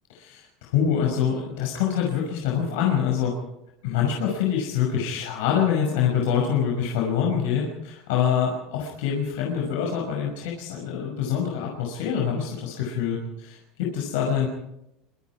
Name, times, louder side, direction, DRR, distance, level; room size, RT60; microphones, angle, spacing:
voice 1, 0.1-3.3 3.8-14.5, left 8 dB, 80° left, 0 dB, 5.8 m, -25 dB
26.0 x 23.5 x 4.8 m, 0.85 s
supercardioid pair, 155°, 0 cm